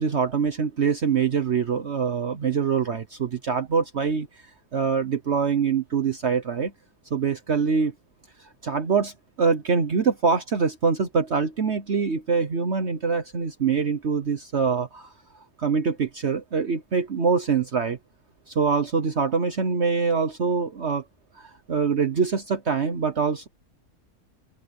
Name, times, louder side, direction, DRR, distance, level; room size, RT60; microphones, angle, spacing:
voice 1, 0.0-4.3 4.7-6.7 7.1-7.9 8.4-15.1 15.6-18.0 18.5-21.0 21.3-23.5, right 5 dB, 50° right, 1.3 m, -24 dB
open air
omnidirectional pair, 1.5 m